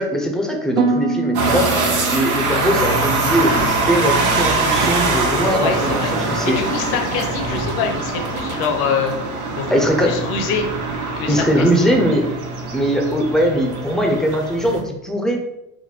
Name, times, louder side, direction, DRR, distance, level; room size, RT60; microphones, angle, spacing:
voice 1, 0.0-6.6 9.7-10.2 11.3-12.3 12.7-15.5, equal, ahead, 1 dB, 0.6 m, -20 dB
Harp, 0.8-4.9 5.2-5.7 6.2-6.5, right 4 dB, 65° right, 0.9 m, -27 dB
sound 1, 1.3-14.8, right 3 dB, 85° right, 1.2 m, -22 dB
voice 2, 5.5-9.1 9.6-9.7 10.0-10.7 11.2-11.7, left 6 dB, 60° left, 4 dB, 0.8 m, -25 dB
4.3 x 2.1 x 4.3 m, 0.86 s
supercardioid pair, 95°, 42 cm